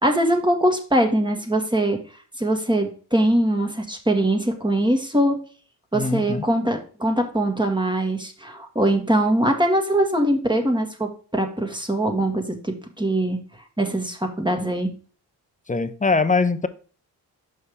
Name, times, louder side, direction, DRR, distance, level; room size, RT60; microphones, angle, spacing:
voice 1, 0.0-2.0 2.4-5.4 5.9-13.4 13.8-14.9, right 1 dB, 10° right, 4 dB, 2.0 m, -22 dB
voice 2, 5.9-6.4 15.7-16.7, left 4 dB, 20° left, 11 dB, 0.8 m, -22 dB
6.6 x 5.6 x 3.6 m, 0.39 s
cardioid pair, 65°, 42 cm